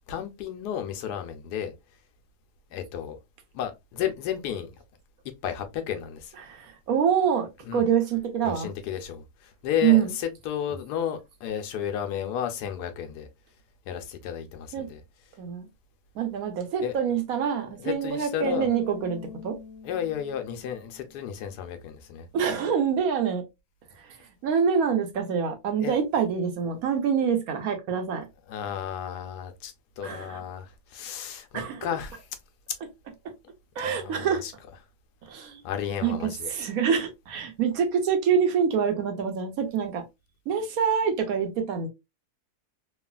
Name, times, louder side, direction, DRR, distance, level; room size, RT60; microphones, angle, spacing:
voice 1, 0.1-1.7 2.7-3.2 3.5-4.7 5.4-6.3 7.7-7.9 8.4-13.3 13.9-15.0 16.8-17.0 17.6-18.7 19.8-22.3 25.8-25.9 28.5-32.3 33.8-34.5 35.6-36.5, left 9 dB, 85° left, 1.2 m, -33 dB
voice 2, 6.4-7.5 7.7-8.7 9.8-10.1 14.7-14.9 15.4-15.7 16.2-19.2 19.4-19.5 22.3-23.4 24.4-28.2 30.0-30.4 31.5-31.9 33.8-34.4 35.3-35.6 36.0-40.0 40.5-41.9, right 7 dB, 70° right, 1.0 m, -25 dB
Bass guitar, 18.4-21.5, left 5 dB, 60° left, 1.1 m, -43 dB
3.1 x 2.3 x 2.2 m
omnidirectional pair, 1.7 m